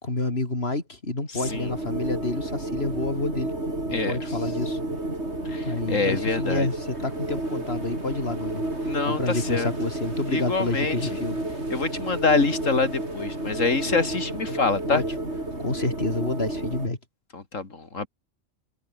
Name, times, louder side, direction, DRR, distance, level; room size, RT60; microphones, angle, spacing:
voice 1, 0.0-3.5 3.9-4.8 5.6-8.6 9.1-11.4 14.5-14.6 14.9-15.0 15.6-17.0, left 2 dB, 50° left, 4.2 m, -29 dB
voice 2, 1.3-1.7 3.9-4.4 5.4-6.7 8.8-9.7 10.3-11.0 11.7-15.0 17.3-18.1, left 3 dB, 75° left, 3.2 m, -26 dB
sound 1, 1.4-16.9, right 1 dB, 55° right, 6.8 m, -31 dB
omnidirectional pair, 1.3 m